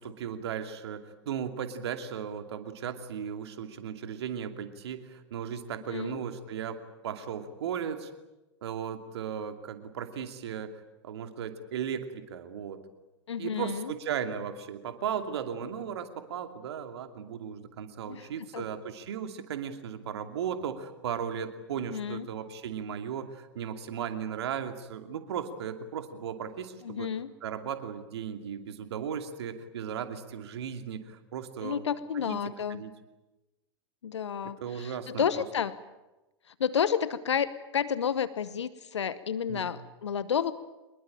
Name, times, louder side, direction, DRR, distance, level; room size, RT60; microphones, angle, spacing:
voice 1, 0.0-8.1 8.6-12.8 13.4-27.1 27.4-31.9 32.1-32.4 32.7-32.9 34.6-35.4 39.5-39.7, right 8 dB, 65° right, 7 dB, 2.6 m, -36 dB
voice 2, 5.9-6.2 13.3-13.9 18.1-18.3 18.5-18.7 21.9-22.3 26.8-27.3 31.6-32.8 34.0-35.7 36.6-40.5, left 7 dB, 75° left, 16 dB, 0.9 m, -31 dB
25.0 x 21.5 x 8.9 m, 1.0 s
figure-of-eight pair, 95°, 15 cm